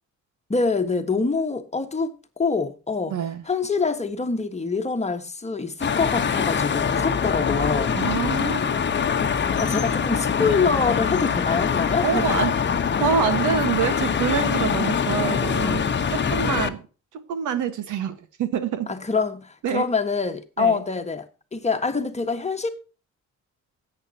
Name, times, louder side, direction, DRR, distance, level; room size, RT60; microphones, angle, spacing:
voice 1, 0.5-3.1 3.5-8.0 9.6-12.4 18.9-22.7, left 4 dB, 20° left, 1.4 m, -25 dB
voice 2, 3.1-3.4 7.9-8.8 12.0-12.5 13.0-16.8 17.1-18.9 19.6-19.9 20.6-20.8, right 8 dB, 80° right, 1.5 m, -26 dB
sound 1, 5.8-16.7, left 6 dB, 35° left, 1.0 m, -23 dB
13.5 x 8.6 x 2.8 m
cardioid pair, 90°, 30 cm